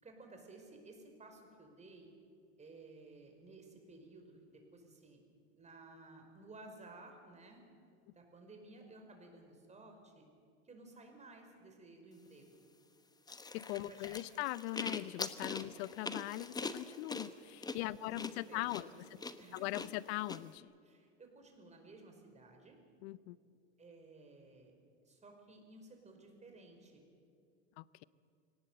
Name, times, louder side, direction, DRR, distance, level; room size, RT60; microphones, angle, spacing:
voice 1, 0.0-2.1 2.6-5.2 5.5-7.7 8.0-10.2 10.6-12.6 13.9-14.4 15.5-15.8 18.0-19.9 20.8-22.8 23.8-24.7 25.1-27.0, right 2 dB, 20° right, 4 dB, 5.1 m, -56 dB
sound 1, 13.3-20.4, left 3 dB, 10° left, 1.1 m, -43 dB
voice 2, 13.5-18.9 19.5-20.7 23.0-23.4 27.8-28.0, left 18 dB, 65° left, 19 dB, 0.8 m, -40 dB
23.0 x 18.5 x 8.1 m, 2.4 s
hypercardioid pair, 105°, 34 cm